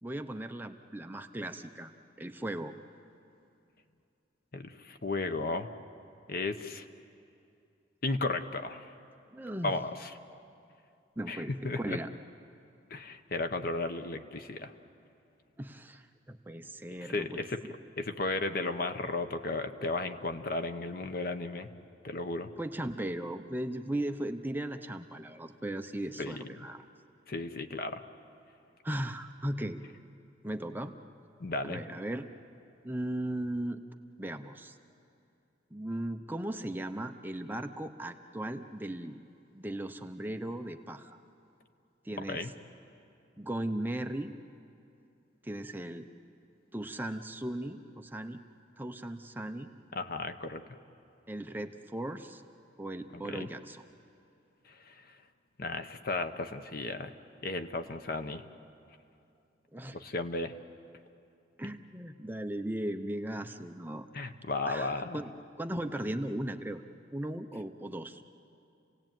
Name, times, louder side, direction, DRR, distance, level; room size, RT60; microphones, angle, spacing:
voice 1, 0.0-1.9 2.2-2.7 9.3-9.8 11.2-12.1 15.6-17.7 22.6-26.8 28.8-29.8 30.4-30.9 31.6-32.3 32.8-33.8 34.2-34.8 35.7-39.2 39.5-41.2 42.0-42.5 43.4-44.3 45.4-46.1 46.7-48.4 48.8-49.7 51.3-52.4 52.8-53.9 59.7-60.0 61.6-64.1 64.7-66.9 67.1-68.2, right 1 dB, 10° right, 6 dB, 0.7 m, -37 dB
voice 2, 4.5-5.7 6.3-6.8 8.0-8.9 9.6-10.1 11.3-12.0 12.9-14.7 17.0-17.6 18.0-21.7 22.0-22.5 26.2-26.4 27.3-28.0 31.4-31.8 42.3-42.5 49.9-50.6 53.1-53.5 54.9-55.0 55.6-57.1 57.4-58.4 59.9-60.5 64.1-65.2, left 3 dB, 50° left, 8 dB, 1.0 m, -34 dB
29.5 x 17.5 x 9.1 m, 2.6 s
head